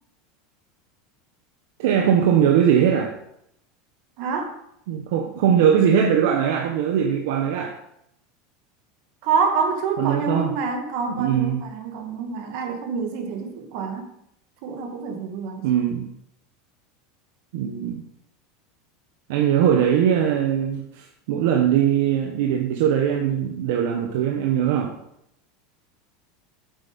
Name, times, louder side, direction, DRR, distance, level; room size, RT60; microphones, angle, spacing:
voice 1, 1.8-3.2 4.9-7.8 10.0-10.5 11.1-11.6 15.6-16.1 17.5-18.0 19.3-24.9, right 9 dB, 65° right, 3 dB, 1.1 m, -21 dB
voice 2, 4.2-4.6 9.2-14.1 14.6-15.6, right 5 dB, 50° right, 4 dB, 1.9 m, -26 dB
8.4 x 8.0 x 5.4 m, 0.77 s
supercardioid pair, 175°, 0 cm